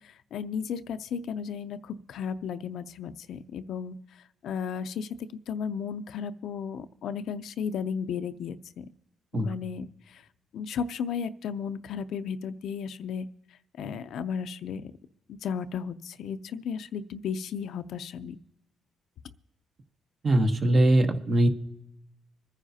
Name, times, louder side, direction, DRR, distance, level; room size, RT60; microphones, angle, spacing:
voice 1, 0.3-4.0 4.4-5.1 5.5-8.8 9.3-9.9 10.5-13.3 13.8-14.9 15.3-18.4, left 7 dB, 75° left, 11 dB, 0.5 m, -34 dB
voice 2, 20.2-21.5, right 1 dB, 45° right, 6 dB, 1.1 m, -21 dB
25.5 x 9.9 x 2.8 m, 0.89 s
cardioid pair, 90°, 0 cm